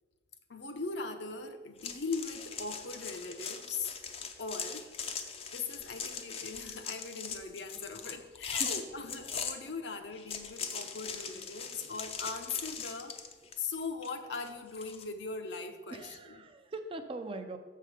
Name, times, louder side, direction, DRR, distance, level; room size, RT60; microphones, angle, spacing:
voice 1, 0.5-3.9 4.4-13.2 13.6-16.4, left 4 dB, 65° left, 6 dB, 0.8 m, -40 dB
sound 1, 1.8-9.6 10.1-13.7 14.0-15.0, left 6 dB, 30° left, 0.6 m, -40 dB
voice 2, 15.9-17.6, right 2 dB, 30° right, 7 dB, 0.6 m, -41 dB
6.6 x 6.6 x 5.0 m, 1.3 s
head